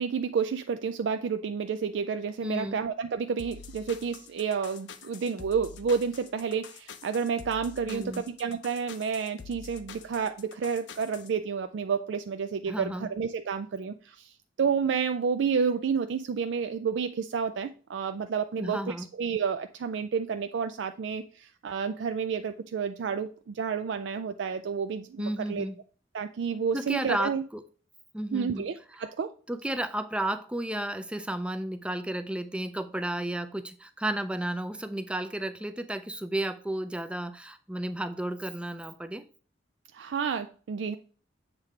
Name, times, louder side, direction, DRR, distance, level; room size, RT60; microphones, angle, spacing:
voice 1, 0.0-25.7 26.1-27.4 28.3-29.3 39.9-41.0, right 6 dB, 70° right, 0.4 m, -30 dB
voice 2, 2.4-2.8 7.9-8.2 12.7-13.1 18.6-19.1 25.2-25.8 26.7-27.6 28.1-28.7 29.5-39.3, right 1 dB, 5° right, 0.4 m, -33 dB
sound 1, 3.4-11.3, left 6 dB, 70° left, 0.6 m, -46 dB
7.4 x 3.2 x 4.9 m
head